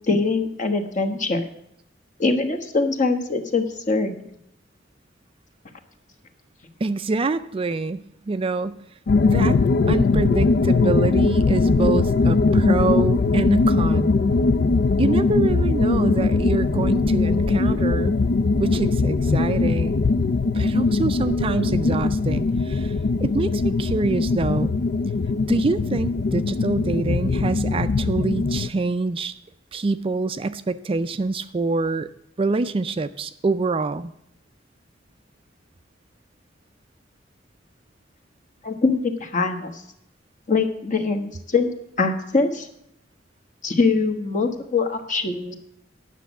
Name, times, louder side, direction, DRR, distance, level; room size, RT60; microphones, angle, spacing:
voice 1, 0.1-1.4 2.2-4.2 38.6-39.7 40.5-41.7 42.0-42.7 43.6-45.5, left 3 dB, 40° left, 5 dB, 1.2 m, -23 dB
voice 2, 6.8-8.8 9.2-9.6 9.9-14.1 15.0-18.2 18.6-19.9 20.5-22.9 23.2-24.7 25.5-29.3 29.7-32.1 32.4-34.1, right 3 dB, 30° right, 12 dB, 0.4 m, -25 dB
sound 1, 9.1-28.7, left 3 dB, 60° left, 0.4 m, -20 dB
10.0 x 6.2 x 8.1 m, 0.75 s
head